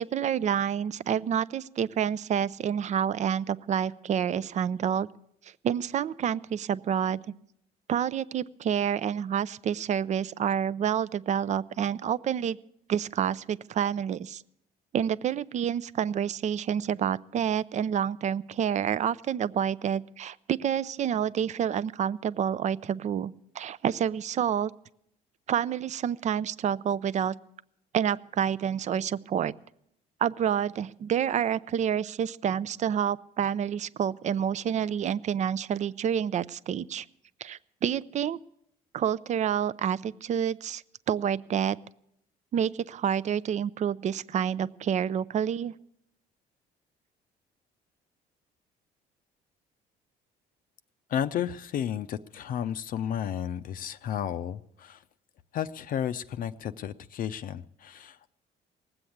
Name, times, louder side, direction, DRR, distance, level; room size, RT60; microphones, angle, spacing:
voice 1, 0.0-5.1 5.6-7.2 7.9-12.6 12.9-14.4 14.9-24.7 25.5-27.3 27.9-29.5 30.2-37.1 37.4-38.4 38.9-40.8 41.1-41.8 42.5-45.7, right 8 dB, 45° right, 18 dB, 0.5 m, -28 dB
voice 2, 51.1-55.0 55.5-58.3, left 9 dB, 55° left, 10 dB, 0.6 m, -32 dB
19.0 x 7.9 x 8.6 m, 0.75 s
cardioid pair, 110°, 17 cm